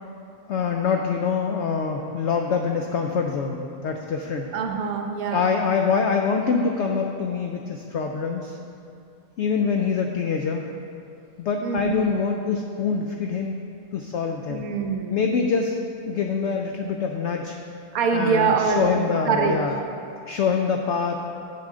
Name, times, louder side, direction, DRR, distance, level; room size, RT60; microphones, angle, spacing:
voice 1, 0.5-4.5 5.3-8.6 9.4-10.6 11.4-13.6 13.9-14.7 15.1-15.8 16.1-17.5 18.1-19.8 20.3-21.2, left 5 dB, 80° left, 3 dB, 0.6 m, -25 dB
voice 2, 4.5-5.5 11.6-12.1 14.5-15.3 17.9-19.6, right 5 dB, 70° right, 4 dB, 1.1 m, -24 dB
9.4 x 6.9 x 3.7 m, 2.6 s
omnidirectional pair, 1.7 m